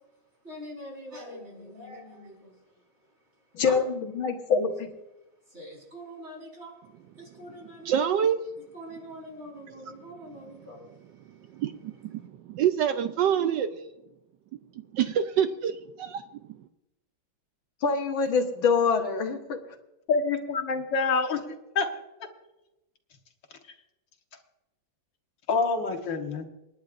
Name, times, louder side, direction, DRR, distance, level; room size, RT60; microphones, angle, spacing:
voice 1, 0.4-3.8 5.4-6.8 7.1-8.1 8.7-11.6 12.2-12.3, equal, 35° right, -1 dB, 5.0 m, -44 dB
voice 2, 3.5-4.9 17.8-19.6, left 5 dB, 90° left, 4 dB, 2.3 m, -25 dB
voice 3, 7.9-8.4 11.6-13.9 14.9-16.2, right 9 dB, 70° right, 9 dB, 1.2 m, -26 dB
voice 4, 20.1-21.9 25.5-26.4, left 4 dB, 70° left, 4 dB, 2.0 m, -27 dB
28.0 x 10.5 x 2.6 m, 0.95 s
omnidirectional pair, 2.1 m